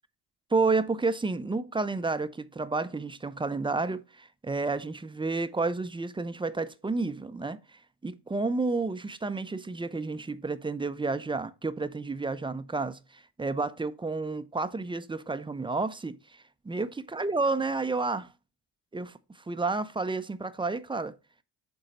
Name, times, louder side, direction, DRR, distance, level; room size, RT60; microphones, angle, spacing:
voice 1, 0.5-18.3 18.9-19.1 19.5-21.2, right 3 dB, 10° right, 0.5 m, -31 dB
7.8 x 3.8 x 4.3 m
hypercardioid pair, 55°, 48 cm